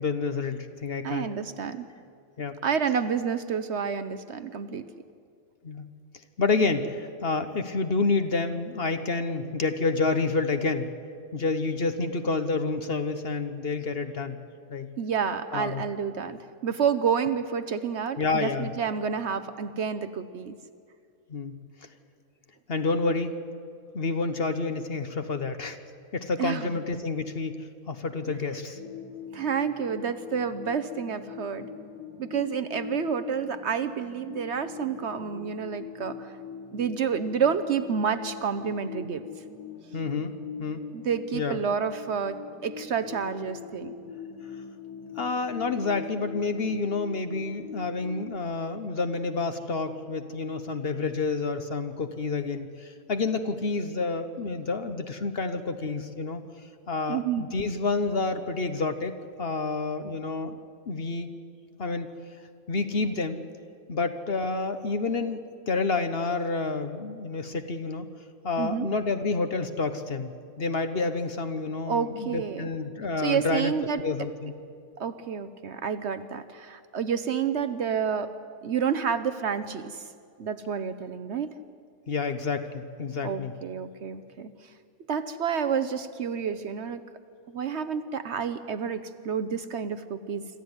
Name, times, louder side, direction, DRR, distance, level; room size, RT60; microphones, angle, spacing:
voice 1, 0.0-1.3 2.4-2.6 5.6-5.9 6.4-10.9 11.3-14.4 14.7-14.9 15.5-15.8 18.2-18.7 21.3-21.6 22.7-23.3 23.9-25.8 26.1-28.8 39.9-40.3 40.6-40.8 41.3-41.6 45.2-56.4 56.9-60.6 60.9-61.3 61.8-62.1 62.7-63.4 63.9-68.1 68.4-73.7 74.0-74.5 82.1-83.5, left 3 dB, 50° left, 9 dB, 1.1 m, -29 dB
voice 2, 1.0-1.9 2.6-4.9 15.0-20.6 26.4-26.8 29.3-31.7 32.2-36.3 36.7-39.3 40.9-43.9 57.1-57.5 68.6-68.9 71.9-72.7 73.2-74.0 75.0-78.3 78.6-80.0 80.4-81.5 83.2-84.5 85.1-87.0 87.5-90.5, right 7 dB, 55° right, 12 dB, 0.9 m, -29 dB
sound 1, 28.7-48.4, left 5 dB, 20° left, 1.5 m, -42 dB
26.0 x 13.5 x 9.6 m, 2.3 s
omnidirectional pair, 1.5 m